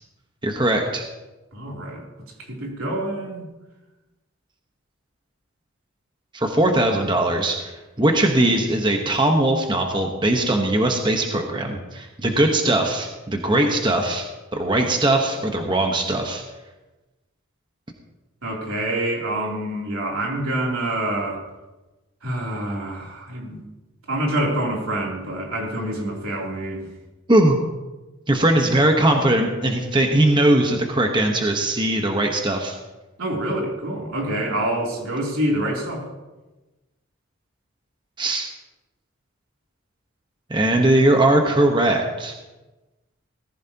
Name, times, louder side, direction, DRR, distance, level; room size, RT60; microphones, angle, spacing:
voice 1, 0.4-1.0 6.3-7.7 8.0-14.2 14.5-16.4 27.3-27.6 28.3-32.8 38.2-38.5 40.5-42.3, right 1 dB, 20° right, 3 dB, 1.2 m, -20 dB
voice 2, 1.5-2.0 2.5-3.5 18.4-21.4 22.2-23.6 24.1-26.8 33.2-36.1, right 1 dB, 90° right, -2 dB, 3.3 m, -26 dB
18.0 x 14.5 x 2.9 m, 1.1 s
head